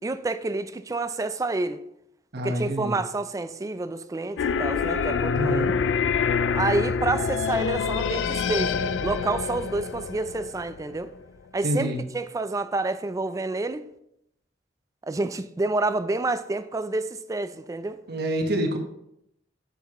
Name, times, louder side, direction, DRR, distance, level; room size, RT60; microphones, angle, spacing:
voice 1, 0.0-1.8 2.4-5.7 6.5-11.1 11.5-13.9 15.1-18.0, right 2 dB, 20° right, 0.3 m, -28 dB
voice 2, 2.3-3.0 5.3-5.7 11.6-12.0 18.1-18.8, right 1 dB, 60° right, 1.1 m, -27 dB
sound 1, 4.4-11.2, left 6 dB, 70° left, 0.3 m, -26 dB
7.9 x 7.1 x 3.0 m
head